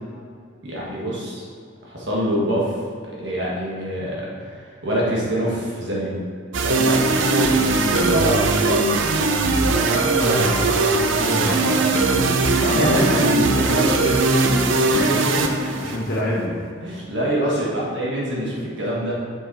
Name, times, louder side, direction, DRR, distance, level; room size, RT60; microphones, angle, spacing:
voice 1, 0.6-1.4 1.9-2.7 3.1-6.2 6.6-9.0 9.7-9.9 12.6-13.3 14.9-15.3 15.6-15.8 16.8-19.2, equal, 70° right, -6 dB, 1.6 m, -25 dB
sound 1, 6.5-16.2, right 3 dB, 85° right, 0.6 m, -20 dB
voice 2, 9.8-15.4 15.8-16.6 17.4-17.5, equal, 55° left, -5 dB, 1.2 m, -26 dB
7.1 x 5.9 x 4.1 m, 2.2 s
head